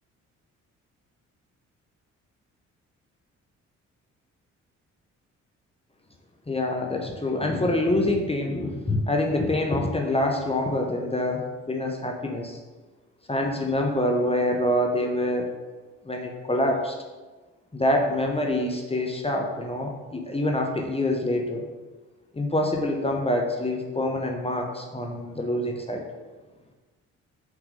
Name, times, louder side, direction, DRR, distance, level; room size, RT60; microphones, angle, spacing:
voice 1, 6.5-12.6 13.3-15.5 16.1-16.9 17.7-21.6 22.3-26.0, left 1 dB, 15° left, 2 dB, 0.9 m, -26 dB
5.9 x 3.8 x 5.1 m, 1.3 s
figure-of-eight pair, 40°, 39 cm